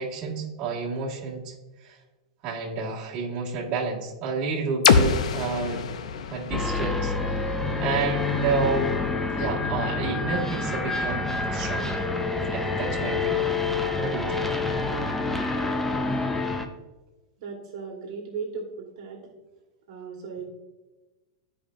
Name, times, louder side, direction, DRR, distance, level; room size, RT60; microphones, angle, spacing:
voice 1, 0.0-1.5 1.8-2.0 2.4-5.9 6.3-7.5 7.8-8.9 9.4-12.0 12.5-13.5 14.0-14.6, right 4 dB, 30° right, -5 dB, 1.6 m, -30 dB
sound 1, 4.8-8.7, left 6 dB, 90° left, 0.5 m, -25 dB
sound 2, 6.5-16.7, left 3 dB, 5° left, 0.4 m, -27 dB
voice 2, 17.4-19.3 19.9-20.5, right 5 dB, 55° right, 1 dB, 1.4 m, -36 dB
13.0 x 5.0 x 2.5 m, 1.2 s
supercardioid pair, 170°, 3 cm